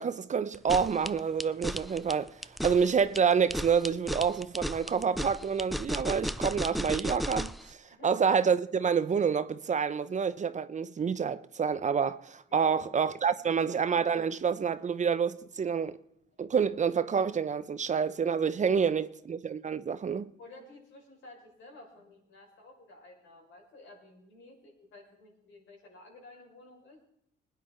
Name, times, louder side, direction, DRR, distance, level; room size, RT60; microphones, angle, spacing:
voice 1, 0.0-15.9 16.4-20.3, right 6 dB, 40° right, 0.7 m, -28 dB
sound 1, 0.5-7.6, equal, ahead, 0.4 m, -34 dB
voice 2, 12.5-13.1 13.4-13.6 16.3-16.6 18.6-18.9 20.4-27.1, left 2 dB, 75° left, 5.2 m, -53 dB
20.0 x 9.7 x 4.4 m
cardioid pair, 90°, 20 cm